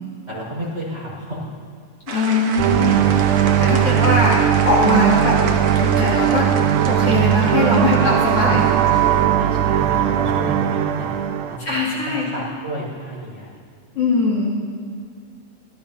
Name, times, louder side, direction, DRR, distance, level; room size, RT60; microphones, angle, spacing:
voice 1, 0.3-1.4 9.3-11.8 12.0-13.5 13.9-14.0, right 1 dB, 20° right, -4 dB, 5.2 m, -31 dB
voice 2, 2.1-3.1 3.6-4.4 4.6-5.4 5.8-6.4 6.8-8.7 11.6-12.3 13.9-14.6, left 3 dB, 50° left, -5 dB, 3.3 m, -21 dB
sound 1, 2.1-9.2, right 5 dB, 60° right, 1.7 m, -31 dB
sound 2, 2.6-11.6, right 10 dB, 85° right, 2.1 m, -18 dB
24.5 x 17.5 x 2.8 m, 2.1 s
omnidirectional pair, 3.5 m